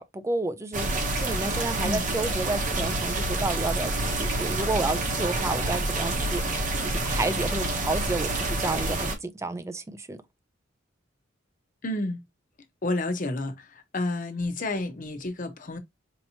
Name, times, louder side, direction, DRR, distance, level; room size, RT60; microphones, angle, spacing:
voice 1, 0.0-6.4 6.8-10.2, right 2 dB, 15° right, 0.4 m, -31 dB
sound 1, 0.7-9.1, right 2 dB, 40° right, 0.8 m, -28 dB
voice 2, 11.8-12.2 12.8-13.6 13.9-15.8, left 2 dB, 45° left, 0.8 m, -30 dB
4.4 x 2.9 x 2.7 m
head